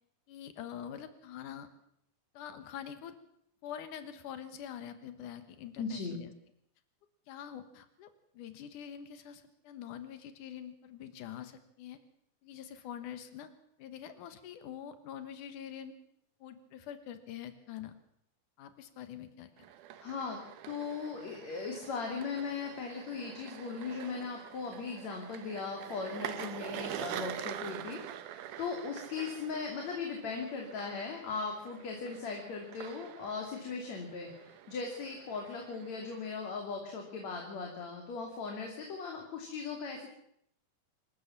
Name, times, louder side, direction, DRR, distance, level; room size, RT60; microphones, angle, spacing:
voice 1, 0.3-1.7 2.3-3.2 3.6-6.3 7.3-12.0 12.4-13.5 13.8-15.9 16.4-17.9 18.6-19.5, left 9 dB, 90° left, 11 dB, 2.9 m, -45 dB
voice 2, 5.8-6.2 20.0-40.1, left 5 dB, 60° left, 2 dB, 4.0 m, -38 dB
sound 1, 19.6-36.5, right 11 dB, 85° right, 2.6 m, -46 dB
26.0 x 14.5 x 7.3 m, 0.71 s
omnidirectional pair, 3.5 m